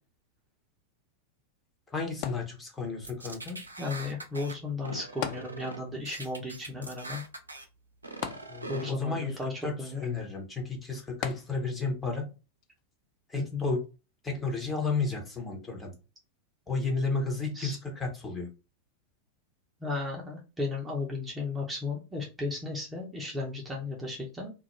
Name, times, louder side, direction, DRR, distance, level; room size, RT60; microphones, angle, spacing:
voice 1, 1.9-3.6 8.5-12.3 13.3-13.8 14.2-15.9 16.7-18.5, left 4 dB, 15° left, 1 dB, 0.8 m, -32 dB
sound 1, 2.2-3.1 5.2-6.1 6.4-6.5 8.2-9.1 11.2-11.9 12.6-12.7, left 9 dB, 45° left, 0.3 m, -38 dB
sound 2, 3.0-4.5 4.8-5.8 6.1-7.6 8.0-8.9, right 2 dB, 80° right, 0.4 m, -42 dB
voice 2, 3.8-7.2 8.7-10.0 13.4-13.6 17.5-17.8 19.8-24.5, left 3 dB, 10° right, -2 dB, 0.7 m, -35 dB
2.4 x 2.1 x 2.9 m, 0.30 s
figure-of-eight pair, 90°, 0 cm